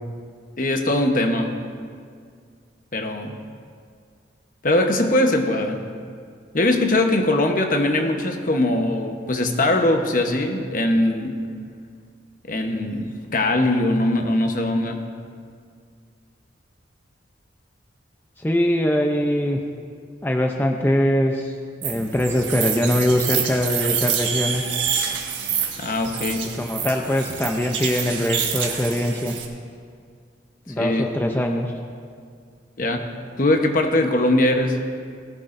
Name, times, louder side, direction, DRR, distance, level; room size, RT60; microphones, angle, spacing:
voice 1, 0.6-1.6 2.9-3.4 4.6-5.9 6.5-11.4 12.5-15.0 25.8-26.5 30.8-31.1 32.8-34.8, left 1 dB, 45° left, 4 dB, 1.1 m, -21 dB
voice 2, 18.4-19.6 20.2-21.5 21.8-24.6 26.6-29.4 30.7-31.7, left 1 dB, 10° left, 2 dB, 0.6 m, -22 dB
sound 1, 21.8-29.4, right 7 dB, 85° right, 1.5 m, -27 dB
19.0 x 15.5 x 2.6 m, 2.1 s
head